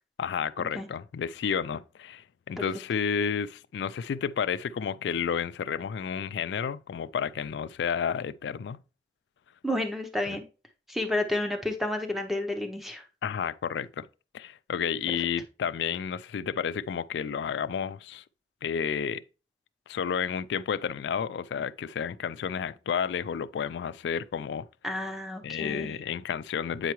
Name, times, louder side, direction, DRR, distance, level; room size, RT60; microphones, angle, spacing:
voice 1, 0.2-8.8 10.3-10.4 13.2-14.1 14.3-18.2 18.6-19.2 19.9-24.7 25.4-26.9, left 7 dB, 75° left, 0.3 m, -31 dB
voice 2, 9.6-10.4 10.9-13.0 24.8-26.0, left 1 dB, ahead, 0.7 m, -31 dB
8.3 x 4.6 x 3.0 m
head